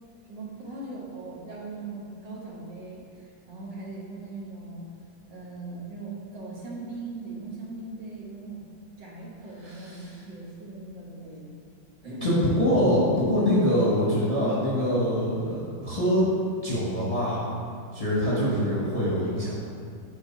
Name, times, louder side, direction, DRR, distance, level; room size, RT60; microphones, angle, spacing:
voice 1, 0.3-4.9 5.3-8.6 9.0-11.5 12.0-12.4 18.3-18.7, right 3 dB, 65° right, -4 dB, 1.9 m, -39 dB
voice 2, 9.6-10.1 12.2-16.3 16.6-17.4 17.9-19.5, equal, 20° left, -7 dB, 1.0 m, -24 dB
7.8 x 4.1 x 4.5 m, 2.3 s
omnidirectional pair, 2.1 m